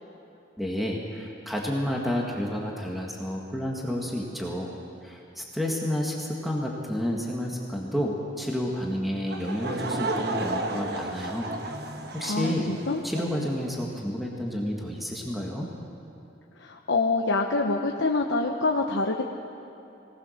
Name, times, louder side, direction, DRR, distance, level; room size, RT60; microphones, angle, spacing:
voice 1, 0.6-4.7 5.0-11.5 12.1-12.7 13.0-15.7, equal, ahead, -2 dB, 1.8 m, -30 dB
Laughter / Crowd, 9.3-13.5, right 2 dB, 55° right, 1.3 m, -33 dB
voice 2, 12.3-13.0 16.6-19.2, left 3 dB, 70° left, 1 dB, 1.0 m, -26 dB
22.5 x 18.5 x 6.5 m, 3.0 s
head